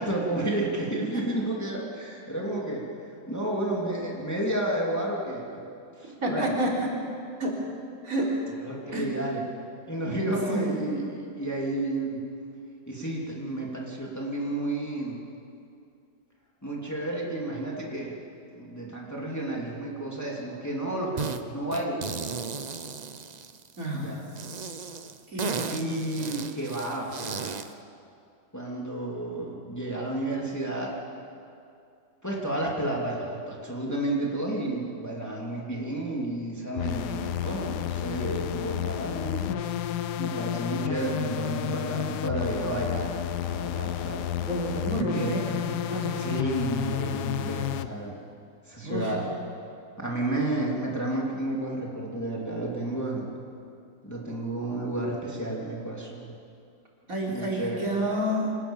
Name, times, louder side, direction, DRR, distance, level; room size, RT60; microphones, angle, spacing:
voice 1, 0.0-2.8 3.3-5.6 6.0-6.5 8.6-9.4 9.9-12.2 12.9-15.2 16.6-18.2 18.5-22.0 23.9-24.2 25.7-27.6 28.5-31.0 32.2-39.5 40.2-43.2 43.5-44.3 44.9-45.3 46.2-48.1 48.7-49.2 50.0-53.3 54.0-56.3 57.3-57.8, right 1 dB, 10° left, -3 dB, 3.0 m, -31 dB
voice 2, 6.2-7.0 7.4-7.6 8.0-8.5 8.9-9.1 10.5-10.6 23.8-24.2 25.3-25.9 44.4-46.4 48.8-49.1 57.1-58.5, right 1 dB, 45° right, -3 dB, 4.1 m, -29 dB
sound 1, 21.2-21.4 21.7-23.8 24.3-27.7, right 5 dB, 80° right, 0.3 m, -35 dB
sound 2, 36.8-47.9, left 11 dB, 70° left, 1.2 m, -31 dB
25.5 x 19.0 x 7.3 m, 2.5 s
omnidirectional pair, 2.0 m